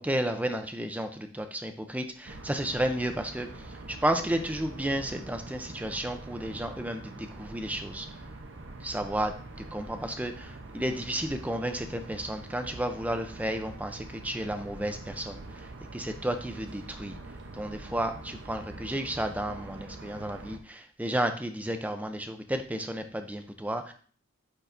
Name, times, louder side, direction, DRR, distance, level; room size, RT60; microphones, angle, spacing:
voice 1, 0.0-8.1 8.8-9.3 9.7-17.2 17.5-23.9, right 1 dB, 5° right, 7 dB, 0.6 m, -32 dB
sound 1, 2.2-20.6, right 2 dB, 60° right, 0.8 m, -44 dB
9.9 x 4.5 x 2.6 m, 0.44 s
head